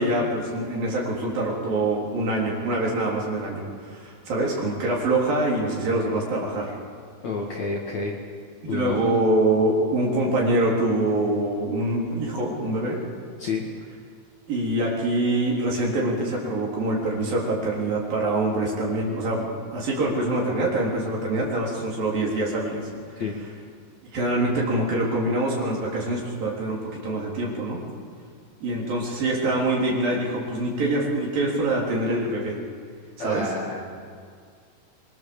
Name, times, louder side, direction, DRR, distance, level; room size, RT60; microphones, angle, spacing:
voice 1, 0.0-6.7 8.6-13.0 14.5-19.5 19.7-22.9 24.1-27.8 28.6-32.6 33.2-33.5, right 2 dB, 50° right, -3 dB, 5.2 m, -25 dB
voice 2, 7.2-8.2 8.7-9.0 13.4-13.6 23.2-23.4 33.2-33.8, left 4 dB, 50° left, -1 dB, 2.5 m, -29 dB
26.0 x 22.5 x 7.1 m, 2.1 s
omnidirectional pair, 5.2 m